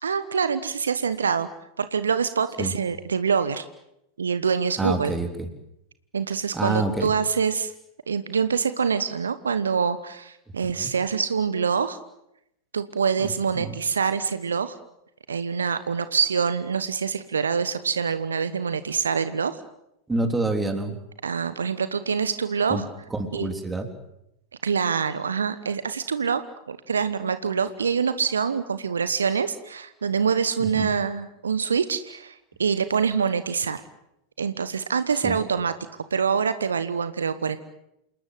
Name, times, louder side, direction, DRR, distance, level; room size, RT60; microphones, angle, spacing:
voice 1, 0.0-1.5 1.8-3.6 4.2-5.1 6.1-7.7 8.1-12.0 12.7-14.8 15.3-19.6 21.2-22.9 23.3-23.5 24.6-26.4 26.7-33.8 34.4-35.7 36.1-37.6, right 6 dB, 70° right, 13 dB, 1.1 m, -25 dB
voice 2, 4.8-5.5 6.5-7.1 10.8-10.9 13.2-13.8 20.1-20.9 22.7-22.8 23.1-23.9 30.6-30.9 35.2-35.4, right 2 dB, 10° right, 6 dB, 3.4 m, -27 dB
28.5 x 19.5 x 8.0 m, 0.83 s
figure-of-eight pair, 90°, 0 cm